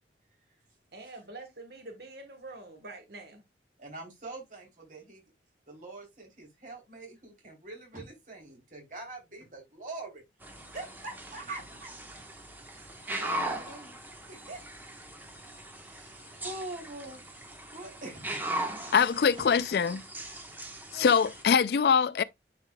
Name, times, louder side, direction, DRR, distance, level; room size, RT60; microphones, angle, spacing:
voice 1, 0.9-3.4, right 2 dB, 60° right, 1.3 m, -45 dB
voice 2, 3.8-5.2 5.7-10.2 10.7-12.3 12.6-14.0 14.3-14.6 15.1-18.4 18.7-18.9 20.9-21.2, right 2 dB, 45° right, 3.3 m, -44 dB
sound 1, 10.4-21.4, right 1 dB, 10° right, 1.2 m, -39 dB
voice 3, 18.9-20.0 20.9-22.2, left 6 dB, 60° left, 0.3 m, -23 dB
9.9 x 5.0 x 2.3 m
head